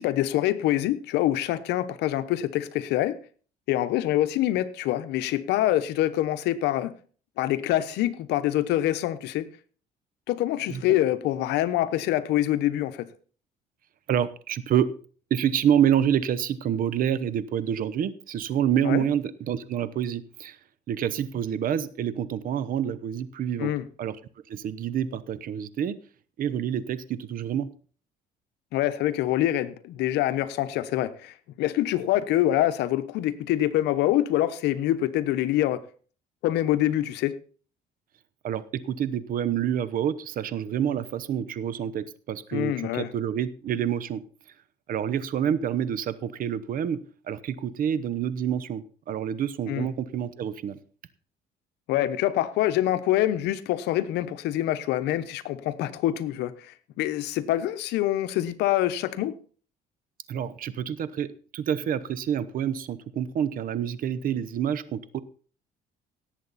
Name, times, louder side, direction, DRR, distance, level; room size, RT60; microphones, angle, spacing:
voice 1, 0.0-3.2 3.7-6.9 7.4-9.5 10.3-13.1 18.8-19.0 23.6-23.8 28.7-35.8 36.4-37.4 42.5-43.1 49.7-49.9 51.9-59.4, left 13 dB, 85° left, 13 dB, 1.0 m, -25 dB
voice 2, 14.1-14.9 15.3-20.6 20.9-23.7 24.0-24.2 24.5-26.0 26.4-27.7 38.4-44.2 44.9-47.0 47.3-50.8 60.3-65.2, right 9 dB, 55° right, 16 dB, 0.9 m, -27 dB
17.5 x 7.7 x 4.1 m, 0.42 s
cardioid pair, 110°, 17 cm